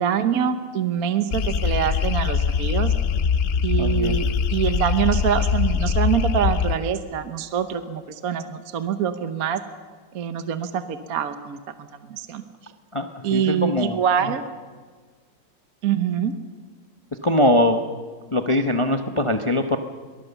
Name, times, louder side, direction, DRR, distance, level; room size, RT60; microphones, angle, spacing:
voice 1, 0.0-2.9 3.6-9.6 10.1-12.7 13.2-14.4 15.8-16.3, right 8 dB, 55° right, 10 dB, 1.3 m, -25 dB
sound 1, 1.3-6.8, left 6 dB, 70° left, 0.5 m, -22 dB
voice 2, 3.8-4.2 12.9-14.0 17.2-17.8 18.3-19.8, left 1 dB, 25° left, 6 dB, 0.6 m, -21 dB
23.0 x 19.5 x 7.1 m, 1.5 s
omnidirectional pair, 2.0 m